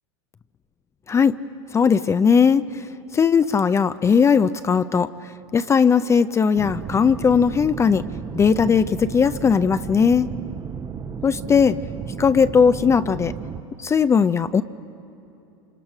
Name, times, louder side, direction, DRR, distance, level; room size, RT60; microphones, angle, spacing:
voice 1, 1.7-2.6 3.1-5.1 5.5-8.0 8.3-10.3 11.2-11.8 12.2-13.3 13.8-14.6, left 6 dB, 20° left, 13 dB, 0.5 m, -18 dB
sound 1, 6.6-13.6, right 6 dB, 20° right, 0.8 m, -33 dB
27.0 x 26.0 x 6.0 m, 2.9 s
hypercardioid pair, 110°, 15 cm